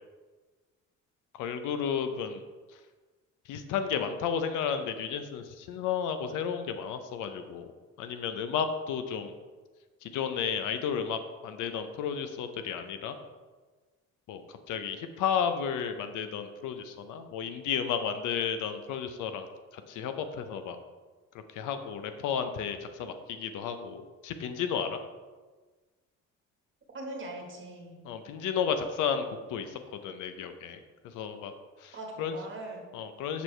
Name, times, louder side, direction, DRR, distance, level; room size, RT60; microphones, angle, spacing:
voice 1, 1.3-2.4 3.5-7.7 8.0-9.3 10.0-13.1 14.3-19.5 19.7-20.8 21.5-25.0 28.0-30.8 31.1-31.5 31.8-32.4 32.9-33.4, left 7 dB, 90° left, 8 dB, 0.6 m, -33 dB
voice 2, 26.9-28.0 31.9-32.9, right 2 dB, 40° right, 1 dB, 1.4 m, -41 dB
6.8 x 4.5 x 3.2 m, 1.3 s
cardioid pair, 90°, 30 cm